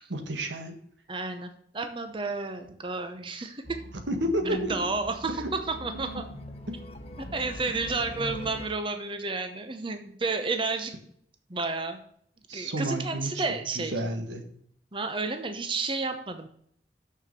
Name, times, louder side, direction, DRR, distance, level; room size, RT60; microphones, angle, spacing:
voice 1, 0.1-0.7 4.1-4.8 12.5-13.4 13.7-14.4, right 1 dB, 90° right, 5 dB, 1.6 m, -30 dB
voice 2, 1.1-3.8 4.7-6.2 7.2-10.9 11.5-12.0 12.5-14.0 14.9-16.5, right 3 dB, 30° right, 7 dB, 0.8 m, -31 dB
sound 1, 3.6-8.7, equal, 35° left, 1.1 m, -41 dB
6.8 x 6.4 x 6.6 m, 0.66 s
head